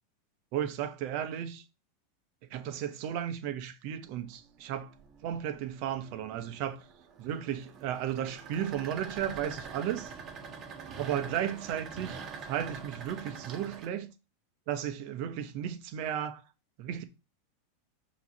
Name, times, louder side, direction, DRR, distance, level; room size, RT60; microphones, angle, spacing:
voice 1, 0.5-1.6 2.5-4.9 5.2-6.9 7.2-10.1 11.0-14.1 14.7-16.4 16.8-17.0, right 10 dB, 55° right, 1.1 m, -34 dB
sound 1, 4.1-13.9, right 5 dB, 30° right, 1.5 m, -45 dB
5.7 x 3.2 x 5.3 m
supercardioid pair, 125°, 0 cm